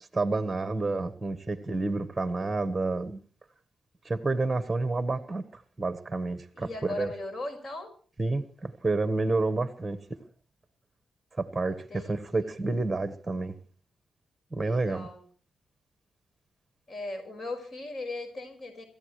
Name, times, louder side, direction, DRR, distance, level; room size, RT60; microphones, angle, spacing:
voice 1, 0.1-3.2 4.0-7.1 8.2-10.2 11.3-13.5 14.5-15.1, right 3 dB, 15° right, 1.4 m, -29 dB
voice 2, 6.5-7.9 11.7-12.5 14.6-15.3 16.9-18.8, left 2 dB, 45° left, 5.3 m, -38 dB
27.5 x 14.5 x 3.2 m
cardioid pair, 95°, 0 cm